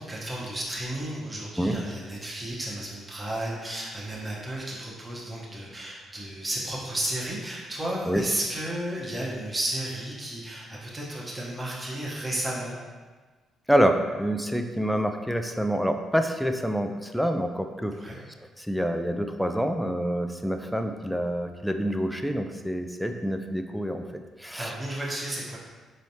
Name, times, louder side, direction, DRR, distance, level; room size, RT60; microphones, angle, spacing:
voice 1, 0.0-12.8 17.9-18.2 24.5-25.6, right 1 dB, 15° right, -6 dB, 0.9 m, -33 dB
voice 2, 13.7-18.0 18.6-24.0 24.4-24.7, equal, ahead, 5 dB, 0.3 m, -27 dB
4.3 x 3.2 x 2.7 m, 1.4 s
cardioid pair, 90°, 0 cm